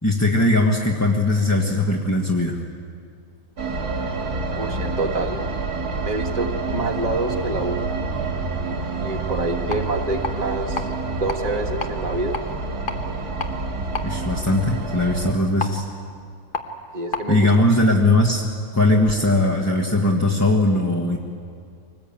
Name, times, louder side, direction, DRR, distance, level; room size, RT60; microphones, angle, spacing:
voice 1, 0.0-2.6 14.0-15.9 17.3-18.4 18.7-21.2, left 2 dB, 10° left, -2 dB, 1.5 m, -19 dB
sound 1, 3.6-15.3, right 3 dB, 90° right, 2.8 m, -28 dB
voice 2, 4.5-5.4 6.0-7.9 9.0-12.4 16.9-17.7, right 2 dB, 25° right, 2 dB, 1.7 m, -27 dB
sound 2, 9.5-17.3, left 3 dB, 35° left, 1.4 m, -34 dB
24.5 x 19.5 x 8.8 m, 2.3 s
omnidirectional pair, 1.6 m